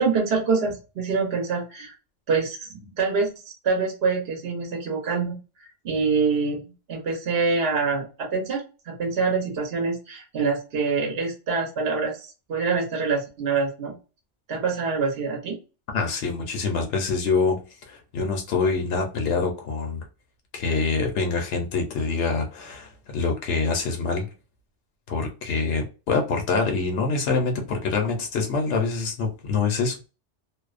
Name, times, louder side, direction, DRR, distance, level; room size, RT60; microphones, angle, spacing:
voice 1, 0.0-1.9 2.3-5.4 5.8-6.6 6.9-13.9 14.5-15.6, right 4 dB, 60° right, 1.0 m, -25 dB
voice 2, 15.9-17.6 17.9-20.0 20.5-24.3 25.1-30.1, left 4 dB, 80° left, 1.0 m, -25 dB
2.6 x 2.0 x 2.4 m
omnidirectional pair, 1.2 m